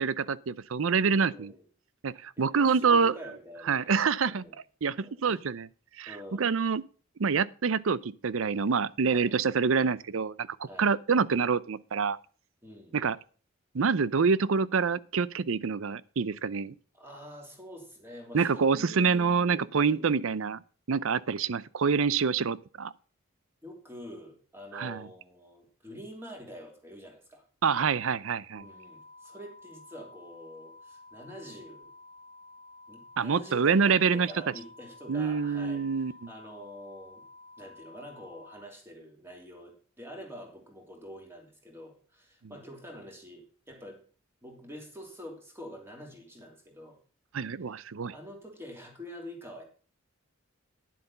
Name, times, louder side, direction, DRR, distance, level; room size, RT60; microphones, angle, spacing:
voice 1, 0.0-1.5 2.0-3.1 3.7-4.4 4.8-5.7 6.0-6.8 7.2-12.2 12.9-13.2 13.7-16.7 18.3-20.6 20.9-22.9 24.7-25.1 27.6-28.6 33.2-34.3 35.1-36.3 47.3-48.1, right 5 dB, 70° right, 0.6 m, -26 dB
voice 2, 1.1-1.6 2.4-3.9 4.3-4.5 5.0-5.4 6.1-6.5 9.1-9.3 10.7-10.9 12.6-13.0 16.9-20.3 23.6-27.4 28.5-31.9 32.9-35.8 36.3-37.2 37.6-44.0 44.4-47.0 48.1-49.6, equal, 10° right, 2.9 m, -46 dB
sound 1, 28.5-38.6, left 2 dB, 55° right, 2.6 m, -52 dB
10.0 x 7.9 x 5.5 m
head